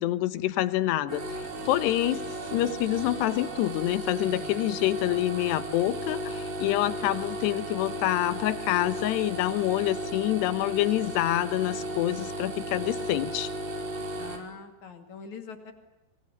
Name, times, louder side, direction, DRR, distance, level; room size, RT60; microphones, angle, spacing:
voice 1, 0.0-2.2 2.5-13.5, left 15 dB, 85° left, 14 dB, 3.2 m, -27 dB
sound 1, 1.1-14.4, right 1 dB, 50° right, 4.7 m, -35 dB
voice 2, 14.2-15.7, left 5 dB, 50° left, 7 dB, 3.5 m, -43 dB
26.5 x 21.0 x 9.4 m, 1.0 s
omnidirectional pair, 4.8 m